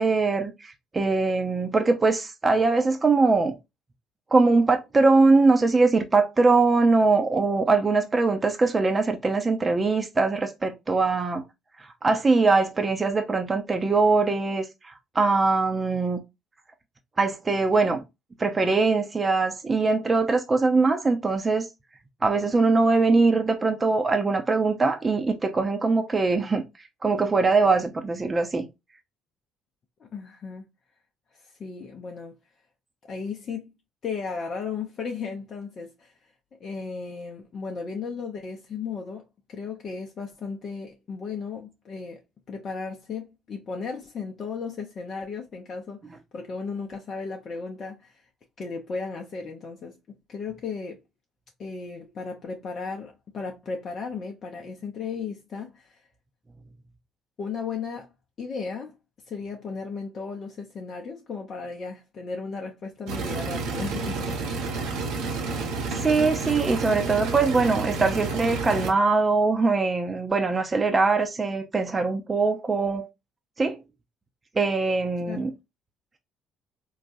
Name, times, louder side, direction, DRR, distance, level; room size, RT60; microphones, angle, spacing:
voice 1, 0.0-3.5 4.3-11.4 11.8-16.2 17.2-18.0 18.4-21.7 22.2-26.7 27.0-28.7 65.9-73.1 73.6-73.8 74.5-75.5, right 3 dB, 30° right, 0.6 m, -22 dB
voice 2, 30.0-30.7 31.4-32.3 33.1-33.7 34.0-36.1 36.6-42.2 42.5-48.2 48.6-51.0 51.6-56.0 57.4-58.1 58.4-58.9 59.3-64.5 75.2-75.5, left 5 dB, 45° left, 0.6 m, -35 dB
sound 1, 63.1-68.9, right 3 dB, 65° right, 0.8 m, -30 dB
3.9 x 2.3 x 2.6 m
hypercardioid pair, 50°, 0 cm